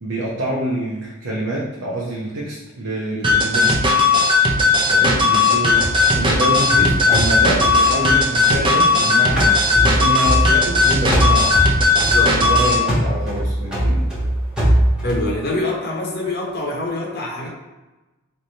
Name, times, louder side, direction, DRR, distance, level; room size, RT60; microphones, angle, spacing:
voice 1, 0.0-3.8 4.9-5.8 6.1-9.5 9.8-11.5 12.2-14.0, right 1 dB, 60° right, -6 dB, 0.8 m, -26 dB
sound 1, 3.2-12.8, left 3 dB, 20° right, 0.5 m, -16 dB
sound 2, 5.8-9.0 9.4-10.8 11.1-15.3, equal, 5° right, 1.1 m, -21 dB
voice 2, 11.9-12.4 15.0-17.5, left 2 dB, 45° left, -3 dB, 0.8 m, -25 dB
3.3 x 2.6 x 4.3 m, 1.1 s
head